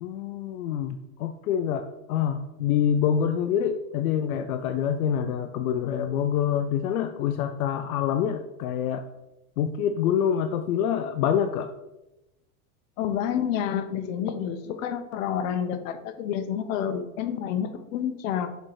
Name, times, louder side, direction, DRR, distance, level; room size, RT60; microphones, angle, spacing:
voice 1, 0.0-9.1 9.6-11.7, left 8 dB, 90° left, 8 dB, 0.6 m, -26 dB
voice 2, 13.0-18.5, left 9 dB, 65° left, 9 dB, 1.0 m, -29 dB
6.6 x 4.4 x 4.9 m, 0.94 s
supercardioid pair, 125°, 42 cm